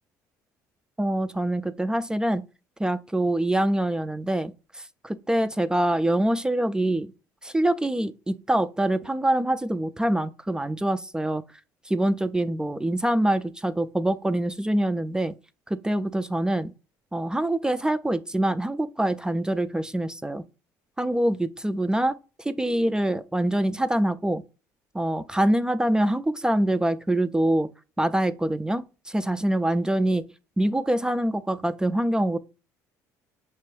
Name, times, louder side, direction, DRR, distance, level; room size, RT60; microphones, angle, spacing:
voice 1, 1.0-2.4 2.8-7.1 7.4-11.4 11.9-15.3 15.7-16.7 17.1-20.4 21.0-24.4 24.9-27.7 28.0-30.2 30.6-32.4, right 1 dB, 10° right, 0.3 m, -25 dB
5.9 x 2.2 x 3.1 m
hypercardioid pair, 70°, 8 cm